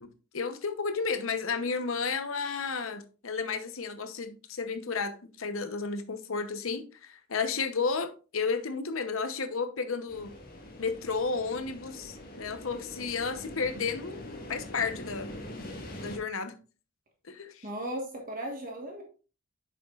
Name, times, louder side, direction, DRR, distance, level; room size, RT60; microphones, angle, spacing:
voice 1, 0.0-10.3 10.8-14.2 14.5-15.3 16.0-16.6 17.3-17.7, left 5 dB, 75° left, 0.9 m, -32 dB
sound 1, 10.1-16.2, left 1 dB, 45° left, 1.8 m, -43 dB
voice 2, 17.6-19.0, right 1 dB, 40° right, 1.4 m, -36 dB
8.9 x 6.8 x 2.4 m
head